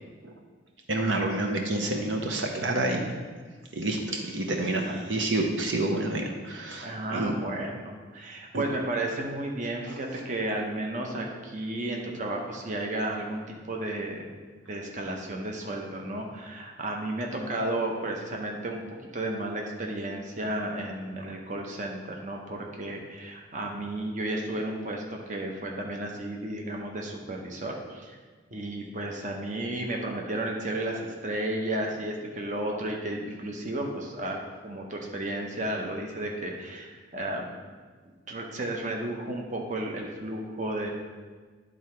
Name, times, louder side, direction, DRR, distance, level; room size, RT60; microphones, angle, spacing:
voice 1, 0.9-3.2 3.7-7.3 8.5-8.6, right 2 dB, 70° right, 2 dB, 0.7 m, -28 dB
voice 2, 6.8-14.3 14.5-18.8 19.1-28.2 28.5-37.6 38.3-40.9, right 1 dB, 40° right, 0 dB, 0.8 m, -33 dB
10.5 x 3.8 x 4.4 m, 1.5 s
head